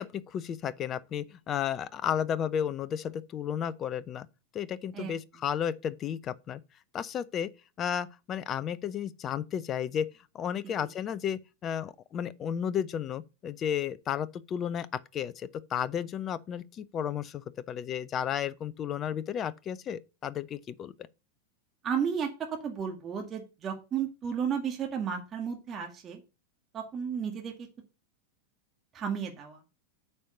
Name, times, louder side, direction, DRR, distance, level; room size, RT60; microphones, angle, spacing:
voice 1, 0.0-4.3 4.5-6.6 6.9-7.5 7.8-10.1 10.3-20.9, left 9 dB, 30° left, 0.6 m, -33 dB
voice 2, 21.8-22.3 22.6-26.2 26.7-27.5 28.9-29.6, right 7 dB, 25° right, 2.0 m, -33 dB
8.6 x 4.7 x 6.7 m
figure-of-eight pair, 90°, 0 cm